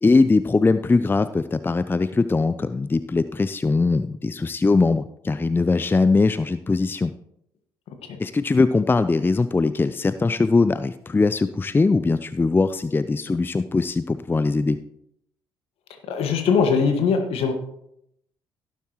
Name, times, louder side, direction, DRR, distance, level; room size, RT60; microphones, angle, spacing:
voice 1, 0.0-7.1 8.2-14.8, left 3 dB, 20° left, 13 dB, 0.5 m, -21 dB
voice 2, 16.1-17.5, left 5 dB, 60° left, 6 dB, 1.8 m, -21 dB
17.0 x 7.3 x 3.1 m, 0.75 s
hypercardioid pair, 50°, 11 cm